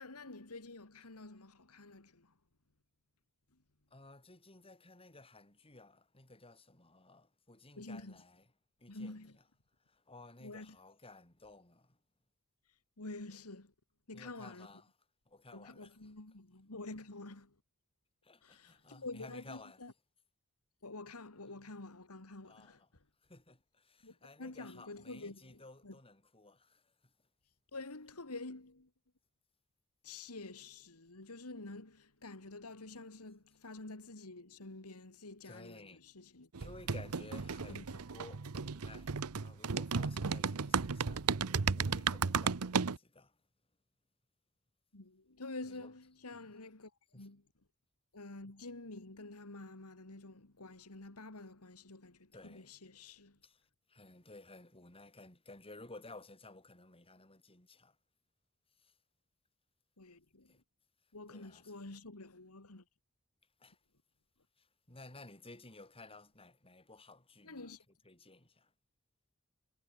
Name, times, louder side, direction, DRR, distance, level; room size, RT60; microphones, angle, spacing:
voice 1, 0.0-2.3 7.8-8.2 8.9-9.4 10.4-10.8 12.7-13.7 14.1-14.7 15.5-17.6 18.4-19.9 20.8-22.8 24.0-26.0 27.7-28.9 30.0-36.5 37.7-37.8 44.9-47.4 48.1-53.4 60.0-60.5 61.1-62.8 67.4-67.8, left 2 dB, 85° left, 2.4 m, -48 dB
voice 2, 3.9-8.4 8.8-9.3 9.8-12.0 14.1-14.9 15.3-16.0 18.2-19.8 22.5-22.9 23.2-27.1 35.4-36.0 36.6-43.4 45.6-45.9 46.3-46.5 47.1-47.3 52.3-52.7 53.4-53.6 53.9-58.0 58.8-59.0 60.5-60.6 61.3-61.7 63.6-63.8 64.6-67.7 68.0-68.7, left 2 dB, 25° left, 7.7 m, -56 dB
sound 1, 36.5-43.0, right 5 dB, 80° right, 0.8 m, -34 dB
head